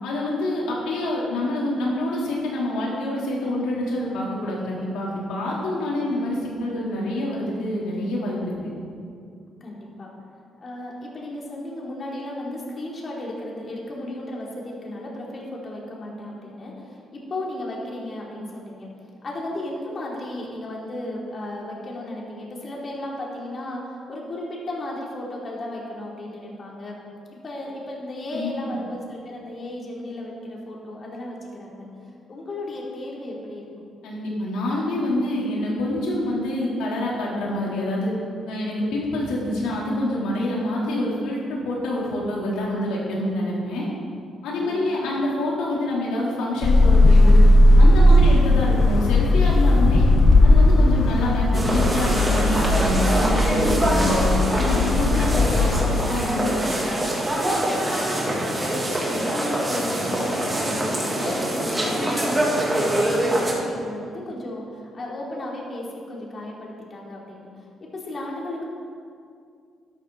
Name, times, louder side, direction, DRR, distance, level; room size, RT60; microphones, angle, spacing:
voice 1, 0.0-8.7 28.3-28.5 34.0-38.1 38.5-43.9 44.4-47.4 47.8-50.1 50.4-56.6, left 1 dB, 90° left, -5 dB, 3.6 m, -26 dB
voice 2, 9.6-10.1 10.6-18.9 19.2-27.0 27.3-31.9 32.3-33.9 44.6-45.0 57.9-67.5 67.8-68.6, left 1 dB, 40° left, -3 dB, 3.3 m, -34 dB
sound 1, 46.6-55.9, left 1 dB, 60° left, 1.5 m, -16 dB
sound 2, 51.5-63.5, right 1 dB, 20° right, 3.0 m, -24 dB
12.5 x 12.5 x 4.2 m, 2.3 s
cardioid pair, 90°, 0 cm